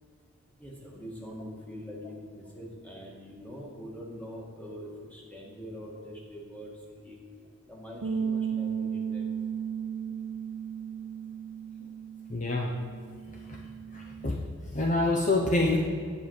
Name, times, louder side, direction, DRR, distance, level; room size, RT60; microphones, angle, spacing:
voice 1, 0.6-7.2 7.7-9.3, equal, 5° left, -3 dB, 1.9 m, -43 dB
sound 1, 8.0-14.3, right 7 dB, 75° right, 0.8 m, -35 dB
voice 2, 12.3-12.7 13.5-13.6 13.9-14.3 14.7-15.8, left 2 dB, 35° left, 0 dB, 0.8 m, -26 dB
9.9 x 5.2 x 8.0 m, 2.1 s
head